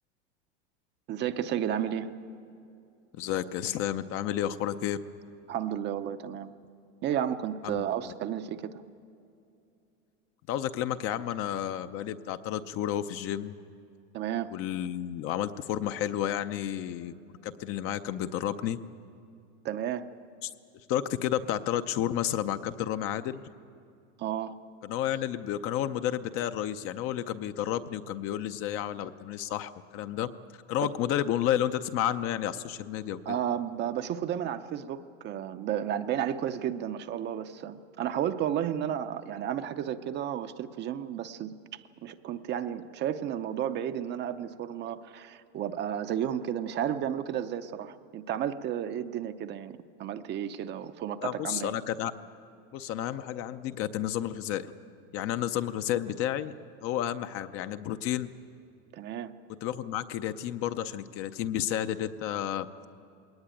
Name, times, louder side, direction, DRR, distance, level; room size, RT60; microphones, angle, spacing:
voice 1, 1.1-2.1 5.5-6.5 7.0-8.8 14.1-14.5 19.6-20.1 24.2-24.6 30.8-30.9 33.3-51.7 58.9-59.3, right 10 dB, 30° right, 9 dB, 0.6 m, -32 dB
voice 2, 3.1-5.0 7.6-7.8 10.5-13.5 14.5-17.1 17.4-18.8 20.4-20.5 20.9-23.4 24.8-30.3 30.7-33.2 51.2-52.1 52.7-54.7 55.1-56.5 56.8-58.3 59.6-62.9, left 11 dB, 35° left, 11 dB, 0.7 m, -31 dB
21.0 x 18.5 x 9.0 m, 2.6 s
supercardioid pair, 140°, 37 cm